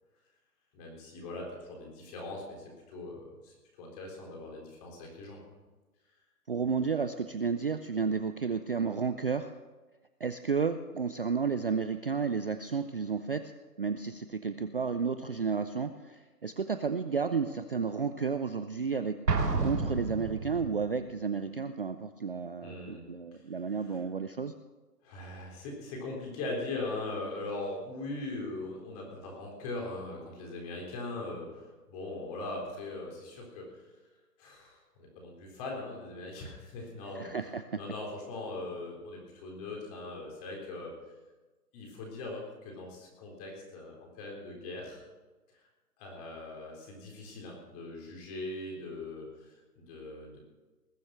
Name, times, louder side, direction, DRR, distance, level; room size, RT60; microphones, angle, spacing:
voice 1, 0.7-5.4 22.6-23.0 23.3-23.4 23.8-24.0 25.0-33.7 34.4-37.3 37.8-40.9 41.7-45.0 46.0-50.4, left 2 dB, 25° left, 0 dB, 3.9 m, -40 dB
voice 2, 6.5-9.5 10.2-13.5 13.8-19.2 19.6-24.5 37.2-37.8, right 5 dB, 40° right, 10 dB, 0.5 m, -32 dB
Explosion, 19.3-20.9, right 4 dB, 80° right, 2.5 m, -30 dB
20.0 x 7.7 x 6.2 m, 1.2 s
hypercardioid pair, 155°, 47 cm